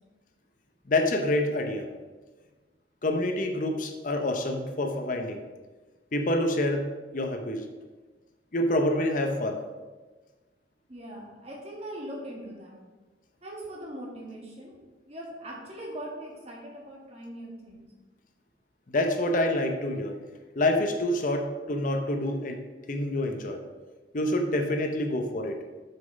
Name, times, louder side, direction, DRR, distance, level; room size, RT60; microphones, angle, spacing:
voice 1, 0.9-1.9 3.0-5.4 6.1-7.7 8.5-9.6 18.9-20.2 20.6-22.6 22.9-23.6 24.1-25.6, left 1 dB, 45° left, 5 dB, 0.7 m, -27 dB
voice 2, 10.9-12.8 13.4-14.7 15.1-17.8, right 1 dB, 35° right, -2 dB, 1.8 m, -40 dB
6.4 x 5.9 x 5.2 m, 1.3 s
head